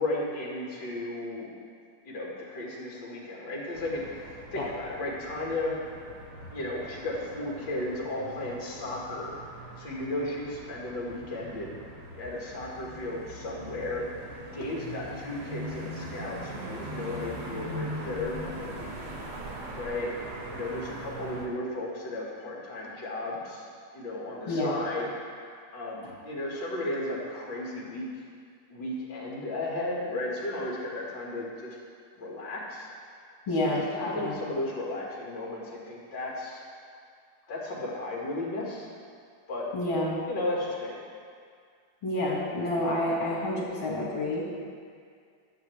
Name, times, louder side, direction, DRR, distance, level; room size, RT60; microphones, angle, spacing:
voice 1, 0.0-1.5 2.0-5.8 6.5-9.4 9.8-11.7 12.2-14.1 14.5-19.1 19.7-20.2 20.5-23.7 23.9-28.1 28.7-31.8 32.2-32.9 33.6-36.6 37.5-38.9 39.5-39.7 40.3-41.0, left 2 dB, 60° left, -4 dB, 2.6 m, -34 dB
sound 1, 3.7-21.5, right 1 dB, 55° right, 2.2 m, -41 dB
voice 2, 24.5-24.8 26.0-26.1 33.5-33.8 34.2-34.4 39.7-40.2 42.0-44.4, left 1 dB, 80° left, -5 dB, 2.9 m, -28 dB
21.5 x 7.6 x 3.4 m, 2.2 s
omnidirectional pair, 2.2 m